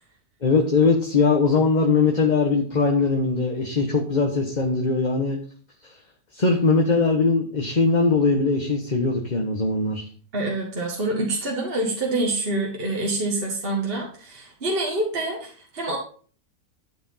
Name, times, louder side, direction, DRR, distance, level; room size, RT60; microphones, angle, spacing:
voice 1, 0.4-5.4 6.3-10.1, left 4 dB, 30° left, 1 dB, 1.3 m, -21 dB
voice 2, 10.3-16.0, right 2 dB, 40° right, -1 dB, 2.0 m, -26 dB
12.0 x 5.0 x 5.6 m, 0.43 s
omnidirectional pair, 1.6 m